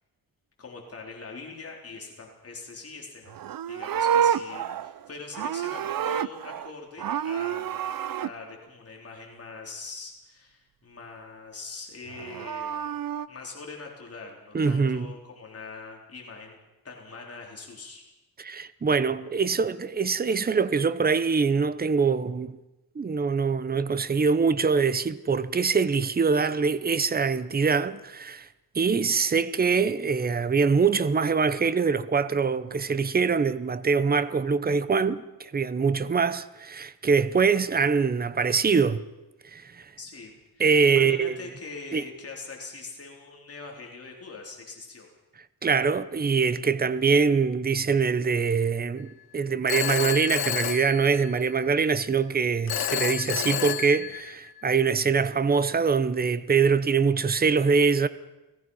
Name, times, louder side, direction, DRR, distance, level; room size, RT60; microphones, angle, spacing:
voice 1, 0.6-3.4 3.7-7.9 8.2-12.9 13.3-16.6 16.8-18.0 40.0-45.1, left 3 dB, 40° left, 3.9 m, -43 dB
Livestock farm animals working animals, 3.3-6.7 7.0-8.3 12.1-13.3, right 9 dB, 60° right, 0.8 m, -28 dB
voice 2, 14.5-15.1 18.4-22.6 22.9-28.5 28.7-39.0 39.5-39.9 40.6-41.4 41.9-42.0 45.6-58.1, right 5 dB, 25° right, 0.9 m, -24 dB
Telephone, 49.7-51.6 52.7-54.6, left 11 dB, 75° left, 1.0 m, -30 dB
29.5 x 19.0 x 5.6 m
wide cardioid pair, 145°, 38 cm